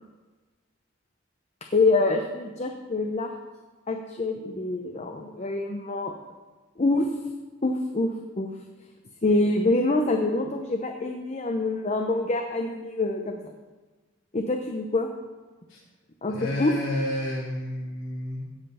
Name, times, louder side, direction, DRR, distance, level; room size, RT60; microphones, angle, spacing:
voice 1, 1.7-3.3 3.9-6.1 6.8-7.1 7.6-8.5 9.2-13.5 14.3-15.1 16.2-16.7, left 2 dB, 35° left, 4 dB, 0.7 m, -26 dB
voice 2, 16.3-18.4, left 1 dB, 85° left, -9 dB, 3.1 m, -30 dB
16.0 x 5.5 x 5.6 m, 1.3 s
head